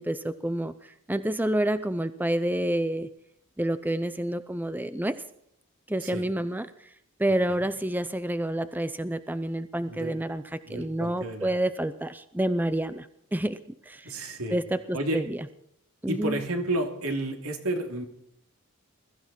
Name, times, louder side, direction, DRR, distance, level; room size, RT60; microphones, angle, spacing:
voice 1, 0.0-3.1 3.6-5.2 5.9-6.7 7.2-13.6 13.8-14.1 14.5-15.4 16.0-16.4, right 1 dB, 10° right, 13 dB, 0.6 m, -28 dB
voice 2, 10.7-11.5 14.0-14.6 14.9-15.2 16.1-18.0, right 1 dB, 80° right, 3 dB, 3.1 m, -31 dB
21.5 x 14.0 x 4.3 m, 0.73 s
head